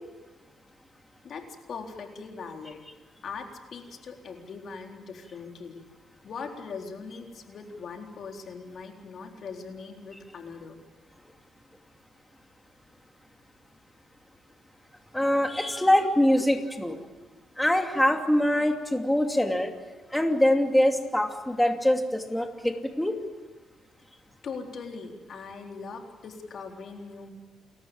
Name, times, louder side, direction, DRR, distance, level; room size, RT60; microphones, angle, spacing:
voice 1, 1.2-2.8 3.2-5.8 6.2-10.8 15.7-15.9 16.7-16.8 24.4-27.3, left 5 dB, 60° left, 3 dB, 3.8 m, -40 dB
voice 2, 15.1-17.0 17.6-19.7 20.1-23.2, left 1 dB, 5° left, 4 dB, 2.8 m, -24 dB
29.0 x 14.5 x 8.9 m, 1.2 s
cardioid pair, 90°, 0 cm